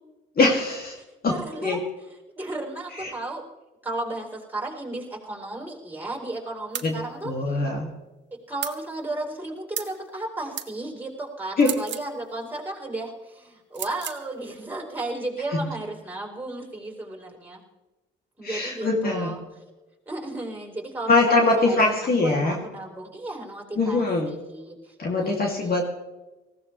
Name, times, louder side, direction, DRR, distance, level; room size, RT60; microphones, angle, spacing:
voice 1, 0.4-1.0 1.2-1.8 2.9-3.1 6.8-7.0 7.2-7.9 11.6-11.7 15.5-15.7 18.4-19.4 21.1-22.6 23.8-24.3 25.0-25.9, left 3 dB, 50° left, 0 dB, 2.6 m, -22 dB
voice 2, 1.3-1.8 2.4-3.4 3.8-7.6 8.3-17.6 18.4-19.4 20.1-22.0 22.2-25.9, right 2 dB, 10° right, 0 dB, 4.2 m, -34 dB
sound 1, 6.7-6.9 8.6-8.8 9.7-10.0 10.6-10.7 11.6-12.1 13.7-14.2, right 10 dB, 65° right, 1.3 m, -33 dB
19.0 x 16.0 x 3.3 m, 1.1 s
cardioid pair, 90°, 20 cm